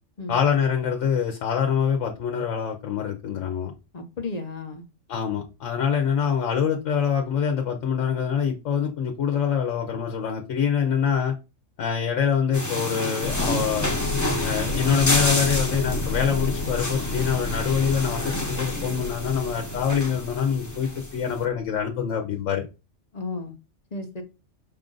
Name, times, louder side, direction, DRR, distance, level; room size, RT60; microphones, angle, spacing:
voice 1, 0.3-3.7 5.1-11.3 11.8-13.9 14.4-22.6, left 7 dB, 85° left, 1.1 m, -25 dB
voice 2, 3.9-4.8 23.1-23.5 23.9-24.2, left 3 dB, 40° left, 0.8 m, -33 dB
sound 1, 12.5-21.3, left 1 dB, 15° left, 0.9 m, -29 dB
sound 2, 13.2-21.8, left 3 dB, 65° left, 1.0 m, -32 dB
5.6 x 2.5 x 3.7 m
omnidirectional pair, 1.3 m